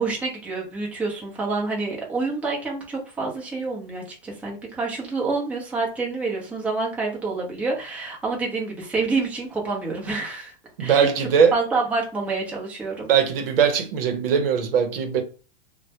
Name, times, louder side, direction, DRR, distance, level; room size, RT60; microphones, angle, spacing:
voice 1, 0.0-10.5 10.8-13.1, right 3 dB, 5° right, 0.6 m, -28 dB
voice 2, 10.8-11.6 13.1-15.2, right 7 dB, 70° right, 0.8 m, -20 dB
2.2 x 2.1 x 2.7 m
hypercardioid pair, 135°, 29 cm